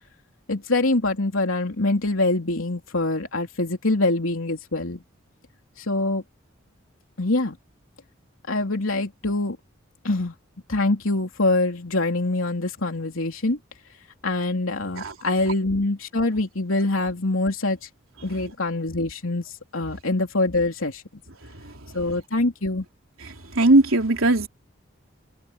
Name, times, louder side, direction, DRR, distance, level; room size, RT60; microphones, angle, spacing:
voice 1, 0.5-5.0 5.8-6.2 7.2-7.6 8.5-9.6 10.0-10.3 10.7-13.6 14.2-17.9 18.2-21.0 21.9-22.8, left 2 dB, 85° left, 3.3 m, -24 dB
voice 2, 21.4-21.7 23.2-24.5, right 2 dB, 90° right, 3.7 m, -20 dB
head